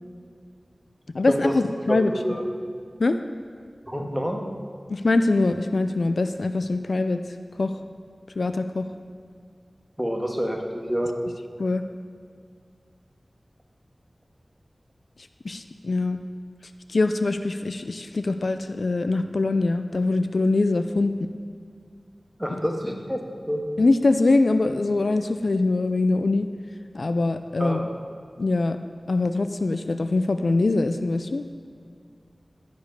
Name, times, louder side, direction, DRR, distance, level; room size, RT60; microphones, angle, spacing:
voice 1, 1.1-2.1 3.0-3.2 4.9-7.2 7.6-7.7 8.4-8.9 11.6-11.8 15.4-16.2 16.9-21.3 22.5-22.6 23.8-26.5 26.9-27.8 28.4-28.8 29.1-31.5, left 3 dB, 75° left, 9 dB, 0.4 m, -23 dB
voice 2, 1.9-2.4 3.9-4.4 10.0-11.1 22.4-23.2 23.5-23.6 27.6-27.9, equal, 5° right, 1 dB, 1.7 m, -27 dB
15.0 x 5.2 x 6.7 m, 2.2 s
wide cardioid pair, 55°, 0 cm